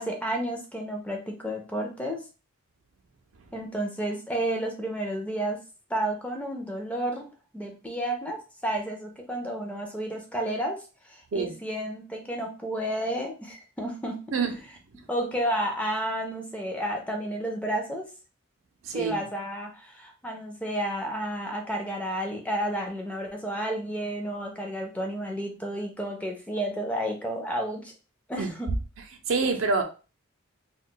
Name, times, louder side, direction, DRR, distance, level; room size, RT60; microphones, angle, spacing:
voice 1, 0.0-2.2 3.5-5.6 5.9-7.3 7.5-10.8 11.1-14.2 15.1-18.1 18.9-27.9 28.3-28.7, right 1 dB, 5° left, 0.4 m, -31 dB
voice 2, 18.9-19.2 28.4-28.5 29.3-29.8, right 4 dB, 70° right, 0.5 m, -26 dB
2.3 x 2.0 x 3.7 m
head